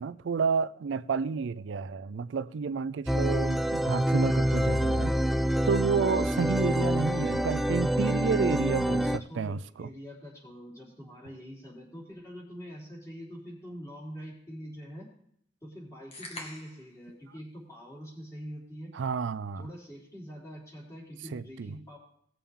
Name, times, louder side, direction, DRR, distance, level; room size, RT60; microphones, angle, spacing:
voice 1, 0.0-5.1 5.6-9.9 18.9-19.7 21.3-21.7, right 5 dB, 80° right, 0.4 m, -30 dB
sound 1, 3.1-9.2, equal, ahead, 0.3 m, -26 dB
voice 2, 8.9-15.1 15.6-18.9 19.6-22.0, equal, 15° left, 4.1 m, -44 dB
sound 2, 16.1-16.9, left 2 dB, 35° left, 1.8 m, -43 dB
18.0 x 7.1 x 3.7 m
head